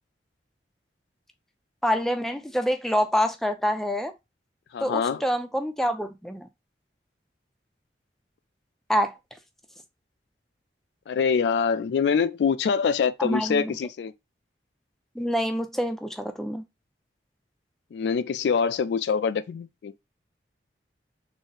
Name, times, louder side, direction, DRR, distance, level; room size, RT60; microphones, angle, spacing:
voice 1, 1.8-4.1 4.8-6.5 8.9-9.2 13.2-13.8 15.2-16.6, equal, ahead, 0.4 m, -26 dB
voice 2, 4.7-5.2 11.1-14.1 17.9-19.9, left 6 dB, 75° left, 0.3 m, -25 dB
4.0 x 2.0 x 3.7 m
head